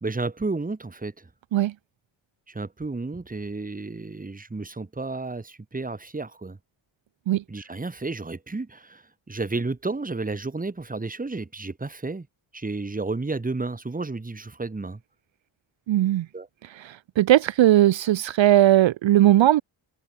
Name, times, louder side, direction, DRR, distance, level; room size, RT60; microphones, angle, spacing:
voice 1, 0.0-1.3 2.5-6.6 7.5-12.3 12.5-15.0 16.3-16.5, right 3 dB, 15° right, 1.2 m, -32 dB
voice 2, 15.9-16.3 16.8-19.6, right 13 dB, 65° right, 0.6 m, -18 dB
cardioid pair, 45°, 48 cm